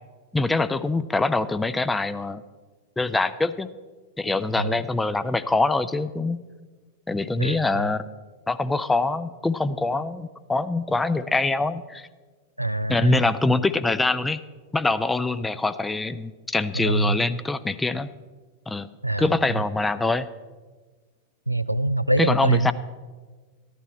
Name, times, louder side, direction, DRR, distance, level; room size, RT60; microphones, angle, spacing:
voice 1, 0.3-2.4 3.0-3.7 4.2-6.4 7.1-8.0 8.5-12.1 12.9-14.4 14.7-18.1 18.7-18.9 19.2-20.3 22.2-22.7, left 2 dB, 10° left, 13 dB, 0.5 m, -24 dB
voice 2, 7.4-7.9 12.6-13.3 16.7-17.2 19.0-19.3 21.5-22.7, right 1 dB, 90° right, 14 dB, 0.4 m, -24 dB
14.0 x 11.0 x 4.3 m, 1.4 s
figure-of-eight pair, 90°, 0 cm